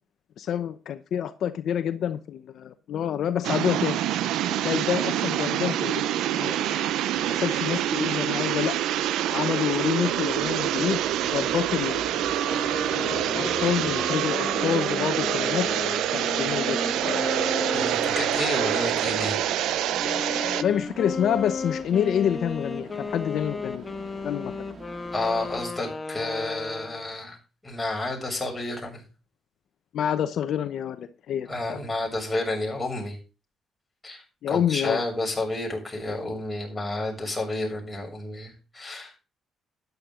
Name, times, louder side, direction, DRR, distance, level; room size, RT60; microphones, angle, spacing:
voice 1, 0.4-4.0 4.5-6.0 6.3-6.9 7.3-8.8 9.3-12.4 12.9-15.7 16.1-17.2 20.6-23.9 24.2-24.5 29.9-31.8 34.4-35.0, left 9 dB, 70° left, 10 dB, 0.9 m, -28 dB
sound 1, 3.4-20.6, right 12 dB, 85° right, 0.7 m, -26 dB
Train, 7.1-25.6, right 4 dB, 40° right, 2.4 m, -42 dB
sound 2, 12.4-19.4 20.0-27.2, left 4 dB, 30° left, 1.6 m, -35 dB
voice 2, 17.7-19.8 25.1-27.4 27.6-29.0 31.5-33.2 34.0-39.2, left 2 dB, 15° left, -1 dB, 7.3 m, -30 dB
13.0 x 10.5 x 3.8 m, 0.33 s
cardioid pair, 90°, 0 cm